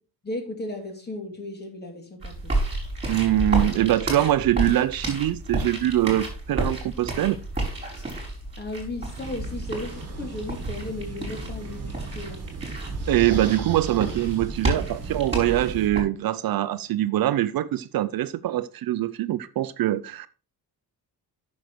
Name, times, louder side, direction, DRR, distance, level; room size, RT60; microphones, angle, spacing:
voice 1, 0.2-2.5 8.6-12.4, left 2 dB, 25° left, 2.5 m, -35 dB
sound 1, 2.2-16.0, right 2 dB, 15° right, 4.7 m, -31 dB
voice 2, 3.1-7.4 13.1-20.3, right 14 dB, 65° right, 0.6 m, -23 dB
sound 2, 9.2-15.9, right 4 dB, 40° right, 1.7 m, -37 dB
9.1 x 6.5 x 4.6 m
cardioid pair, 160°, 38 cm